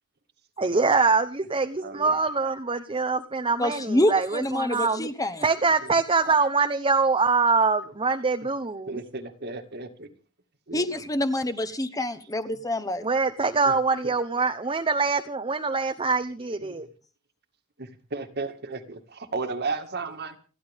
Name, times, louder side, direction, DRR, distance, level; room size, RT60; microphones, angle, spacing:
voice 1, 0.6-5.1 5.4-9.0 13.0-16.9, right 4 dB, 25° right, 0.9 m, -24 dB
voice 2, 1.8-2.2 5.8-5.9 6.2-6.4 8.9-10.1 10.7-11.0 13.7-13.8 14.0-14.1 16.6-16.8 17.8-20.4, right 3 dB, 50° right, 2.0 m, -34 dB
voice 3, 3.6-5.4 10.7-13.1, left 1 dB, 15° left, 1.2 m, -26 dB
29.5 x 11.0 x 3.6 m
head